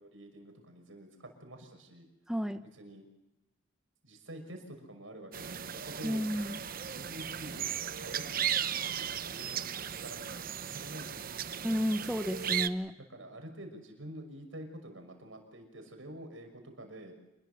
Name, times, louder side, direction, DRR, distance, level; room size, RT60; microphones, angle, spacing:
voice 1, 0.0-2.1 2.7-3.1 4.0-6.2 6.8-7.7 8.0-9.6 9.9-11.6 13.1-17.1, right 1 dB, 80° right, 5 dB, 6.1 m, -48 dB
voice 2, 2.3-2.6 6.0-6.6 11.6-13.0, equal, 5° right, 8 dB, 0.7 m, -32 dB
sound 1, 5.3-12.7, right 9 dB, 45° right, 0.8 m, -36 dB
27.5 x 21.0 x 6.9 m, 0.94 s
head